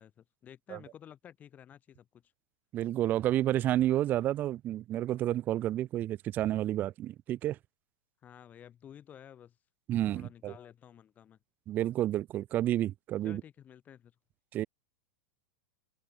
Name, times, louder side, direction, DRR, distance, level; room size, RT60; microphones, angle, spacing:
voice 1, 0.0-2.3 8.2-9.6 10.1-11.4 13.2-14.2, left 9 dB, 20° left, 2.0 m, -53 dB
voice 2, 2.7-7.6 9.9-10.5 11.7-13.4 14.5-14.7, right 13 dB, 20° right, 0.5 m, -30 dB
supercardioid pair, 160°, 8 cm